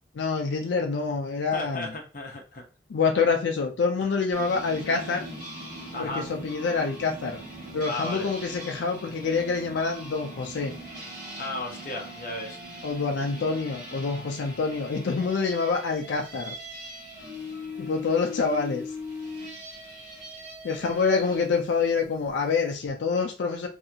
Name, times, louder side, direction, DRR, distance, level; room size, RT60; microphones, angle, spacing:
voice 1, 0.1-1.9 2.9-5.3 6.0-7.4 7.7-10.7 12.8-16.5 17.8-18.8 20.6-23.7, left 4 dB, 90° left, 0.4 m, -26 dB
voice 2, 1.5-2.7 4.0-4.1 5.9-6.3 7.8-8.3 11.4-12.6, left 2 dB, 50° left, 0.7 m, -35 dB
sound 1, 4.3-21.5, left 1 dB, 45° right, 1.3 m, -40 dB
2.7 x 2.4 x 2.7 m
head